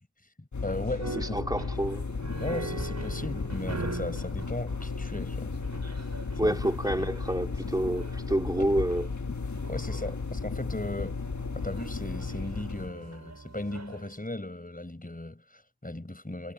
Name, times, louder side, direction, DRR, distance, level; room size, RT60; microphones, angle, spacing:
voice 1, 0.4-1.4 2.4-5.5 6.3-6.6 7.0-7.1 8.6-8.8 9.7-11.2 11.5-16.5, left 2 dB, 25° left, 6.2 m, -37 dB
sound 1, 0.5-12.9, left 4 dB, 55° left, 1.6 m, -34 dB
sound 2, 0.8-14.1, right 3 dB, 50° right, 6.5 m, -43 dB
voice 2, 1.2-2.1 6.4-9.1, right 1 dB, 10° right, 3.3 m, -28 dB
cardioid pair, 45°, 36 cm